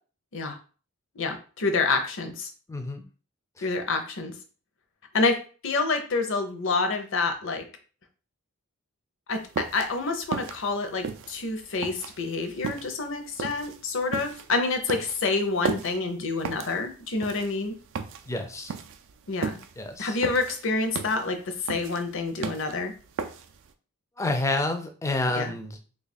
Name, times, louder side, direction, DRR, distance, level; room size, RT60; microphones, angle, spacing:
voice 1, 1.2-2.5 3.6-4.3 5.1-5.4 5.6-7.6 9.3-17.7 19.3-19.6 20.0-22.9 25.3-25.5, left 3 dB, 55° left, 6 dB, 0.6 m, -28 dB
voice 2, 2.7-3.0 3.6-3.7 18.3-18.7 19.8-20.2 24.2-25.8, left 2 dB, 15° left, 5 dB, 0.4 m, -29 dB
sound 1, 9.3-23.7, right 5 dB, 55° right, 0.3 m, -36 dB
3.1 x 2.4 x 4.1 m, 0.38 s
head